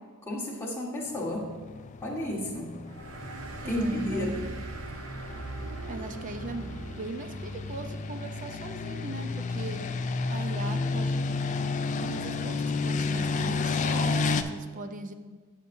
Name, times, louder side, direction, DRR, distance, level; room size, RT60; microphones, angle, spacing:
voice 1, 0.3-1.5 2.0-2.7 3.6-4.5, left 1 dB, 10° left, -4 dB, 1.3 m, -32 dB
sound 1, 1.5-14.4, left 4 dB, 35° left, 0.3 m, -31 dB
sound 2, 2.8-9.9, right 2 dB, 75° right, 0.7 m, -41 dB
voice 2, 3.6-4.4 5.9-9.9 10.3-11.3 12.0-15.1, right 2 dB, 35° right, 8 dB, 0.5 m, -38 dB
10.0 x 6.6 x 2.6 m, 1.5 s
head